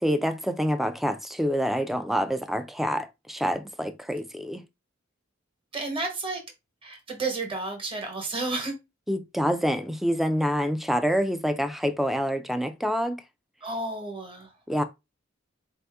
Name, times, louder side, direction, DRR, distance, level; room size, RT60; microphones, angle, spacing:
voice 1, 0.0-4.6 9.1-13.2 14.7-14.8, equal, ahead, 0.3 m, -27 dB
voice 2, 5.7-6.4 6.8-8.7 13.6-14.5, right 3 dB, 25° right, 1.2 m, -31 dB
4.2 x 2.7 x 3.4 m
head